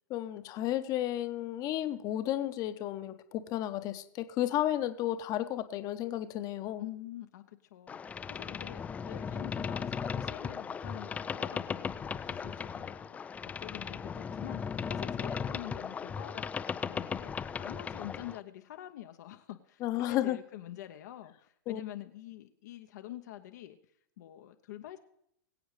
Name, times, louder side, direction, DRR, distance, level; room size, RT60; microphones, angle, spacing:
voice 1, 0.1-6.9 19.8-20.4 21.7-21.8, left 13 dB, 35° left, 10 dB, 0.8 m, -33 dB
voice 2, 6.8-8.0 8.3-13.2 13.4-17.3 17.6-23.8 24.2-25.0, left 13 dB, 65° left, 6 dB, 0.7 m, -46 dB
Boat Water vehicle, 7.9-18.4, left 6 dB, 15° left, 0.3 m, -37 dB
22.5 x 7.9 x 3.2 m, 0.74 s
hypercardioid pair, 115°, 10 cm